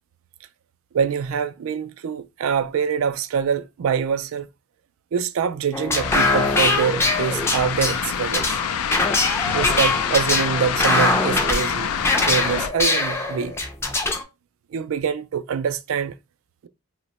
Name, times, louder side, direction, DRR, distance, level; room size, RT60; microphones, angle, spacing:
voice 1, 0.9-4.5 5.1-8.6 9.5-11.9 12.2-13.6 14.7-16.1, right 7 dB, 70° right, 0.3 m, -25 dB
sound 1, 5.7-14.2, left 2 dB, 10° left, 0.4 m, -23 dB
sound 2, 6.0-12.7, left 7 dB, 80° left, 0.4 m, -26 dB
2.8 x 2.1 x 4.0 m
head